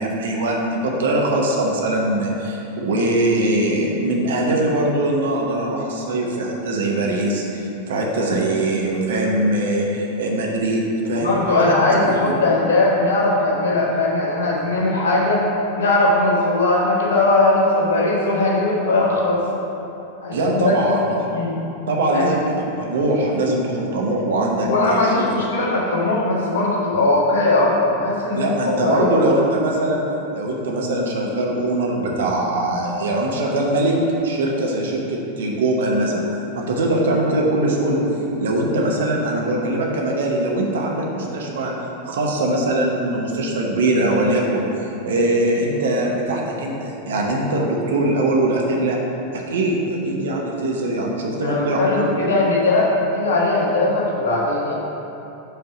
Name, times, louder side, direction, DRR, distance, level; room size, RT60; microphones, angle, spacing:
voice 1, 0.0-11.7 12.0-12.3 20.3-21.4 21.9-25.2 28.3-30.0 30.3-34.0 34.2-38.0 38.4-49.0 49.3-52.1, right 1 dB, 60° right, -1 dB, 0.8 m, -22 dB
voice 2, 11.1-15.4 15.8-19.4 20.2-20.8 21.3-21.6 22.1-22.3 24.6-29.1 51.4-54.7, left 2 dB, 60° left, -4 dB, 1.3 m, -19 dB
5.0 x 4.6 x 5.6 m, 2.9 s
figure-of-eight pair, 90°, 0 cm